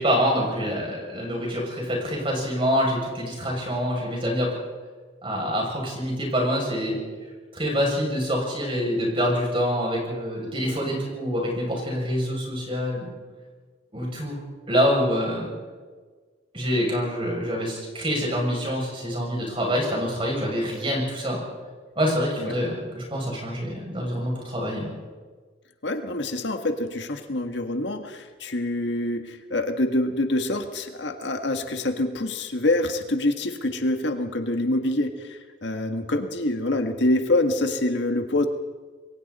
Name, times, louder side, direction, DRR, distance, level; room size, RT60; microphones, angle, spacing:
voice 1, 0.0-4.5 5.2-7.0 7.5-13.1 13.9-14.4 14.7-15.5 16.5-21.4 22.0-24.9, equal, 30° right, -1 dB, 7.1 m, -26 dB
voice 2, 25.8-38.5, left 1 dB, 70° left, 6 dB, 1.7 m, -26 dB
28.0 x 22.5 x 4.3 m, 1.4 s
head